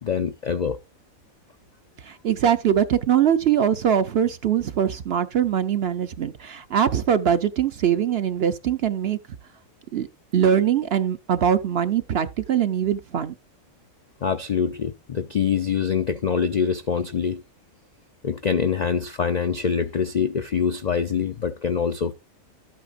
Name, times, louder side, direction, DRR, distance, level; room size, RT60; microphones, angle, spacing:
voice 1, 0.0-0.8 14.2-17.4 18.2-22.1, left 6 dB, 60° left, 0.4 m, -24 dB
voice 2, 2.0-9.2 9.9-10.1 10.3-13.3, right 9 dB, 55° right, 0.8 m, -22 dB
12.5 x 8.4 x 2.5 m
omnidirectional pair, 1.4 m